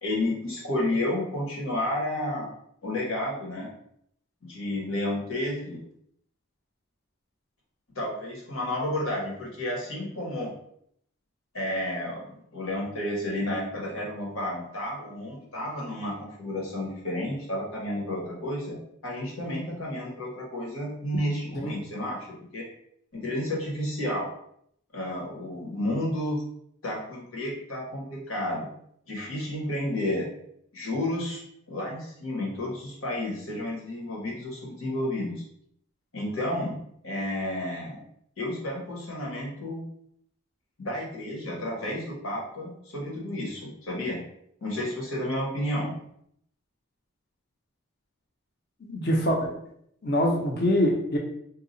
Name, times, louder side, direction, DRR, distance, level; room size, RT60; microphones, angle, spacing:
voice 1, 0.0-2.5 2.8-3.7 4.4-5.8 7.9-10.5 11.5-18.8 19.0-22.7 23.1-24.3 24.9-26.4 26.8-28.7 29.1-30.3 30.7-31.4 31.7-35.4 36.1-36.8 37.0-38.0 38.4-39.8 40.8-44.2 44.6-45.9, left 1 dB, 80° left, -3 dB, 1.3 m, -31 dB
voice 2, 48.8-49.5 50.0-51.2, equal, 50° left, 0 dB, 0.7 m, -24 dB
2.8 x 2.3 x 3.9 m, 0.70 s
head